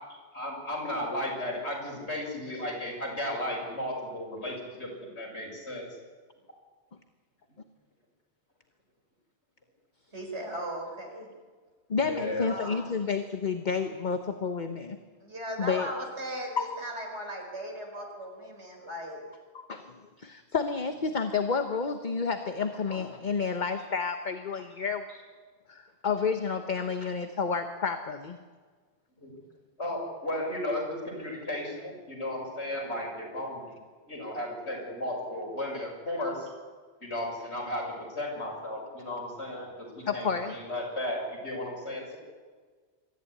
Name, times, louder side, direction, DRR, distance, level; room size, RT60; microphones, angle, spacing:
voice 1, 0.3-5.9 12.0-12.5 29.2-29.3 29.8-33.6 34.1-36.5 37.0-42.2, left 1 dB, 75° left, -1 dB, 7.0 m, -34 dB
voice 2, 10.1-11.3 12.4-12.9 15.2-19.2, equal, 80° right, 2 dB, 5.1 m, -37 dB
voice 3, 11.9-15.0 15.6-15.9 16.6-16.7 19.1-19.2 19.5-25.0 25.7-28.4 40.1-40.6, left 5 dB, 45° left, 7 dB, 1.2 m, -30 dB
24.0 x 14.5 x 9.8 m, 1.5 s
omnidirectional pair, 1.1 m